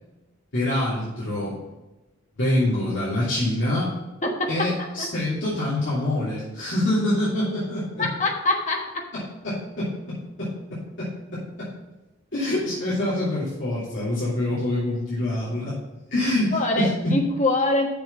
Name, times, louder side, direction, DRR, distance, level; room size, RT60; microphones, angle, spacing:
voice 1, 0.5-1.6 2.4-3.9 4.5-8.0 9.4-11.7 12.3-15.8 16.1-17.2, left 1 dB, 60° left, -10 dB, 3.0 m, -25 dB
voice 2, 4.2-4.7 5.0-5.1 8.0-9.0 16.5-17.9, left 2 dB, 35° left, 1 dB, 1.3 m, -24 dB
6.8 x 6.2 x 5.9 m, 1.0 s
head